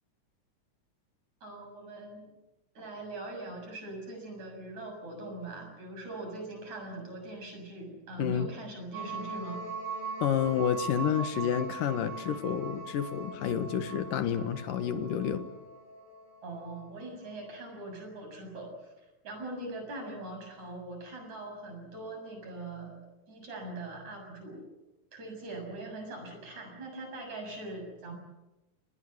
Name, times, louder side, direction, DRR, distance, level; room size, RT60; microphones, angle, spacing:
voice 1, 1.4-2.3 2.7-9.6 16.4-23.0 23.3-24.7 25.1-28.1, right 2 dB, 55° right, 4 dB, 8.3 m, -42 dB
voice 2, 8.2-8.5 10.2-15.4, left 8 dB, 80° left, 9 dB, 3.1 m, -29 dB
sound 1, 8.9-17.1, right 4 dB, 70° right, 7.8 m, -41 dB
29.0 x 19.5 x 8.1 m, 1.0 s
omnidirectional pair, 3.8 m